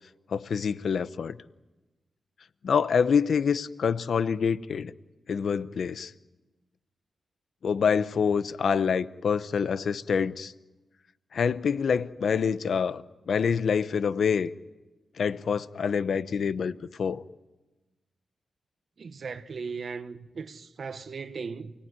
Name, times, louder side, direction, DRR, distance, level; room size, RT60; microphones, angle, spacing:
voice 1, 0.3-1.4 2.6-4.9 5.3-6.1 7.6-10.5 11.3-14.5 15.2-17.2, left 6 dB, 65° left, 0.8 m, -26 dB
voice 2, 19.0-21.7, right 5 dB, 55° right, 1.3 m, -37 dB
29.5 x 18.0 x 9.7 m
wide cardioid pair, 130°, 0 cm